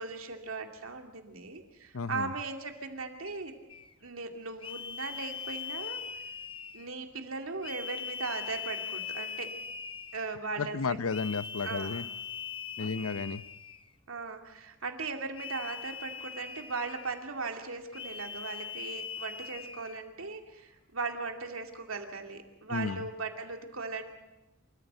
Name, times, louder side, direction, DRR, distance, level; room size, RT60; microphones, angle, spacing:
voice 1, 0.0-3.6 4.0-6.0 6.7-9.5 10.1-11.0 11.6-12.1 12.8-12.9 14.1-24.1, right 4 dB, 75° right, 4 dB, 2.6 m, -38 dB
voice 2, 1.9-2.3 10.6-12.0 12.8-13.4 22.7-23.0, left 4 dB, 90° left, 15 dB, 0.7 m, -33 dB
sound 1, 3.7-3.9 4.6-7.0 7.6-10.4 11.1-13.9 15.3-17.2 17.9-20.0, left 7 dB, 25° left, 0.8 m, -41 dB
28.0 x 14.5 x 8.1 m, 0.99 s
head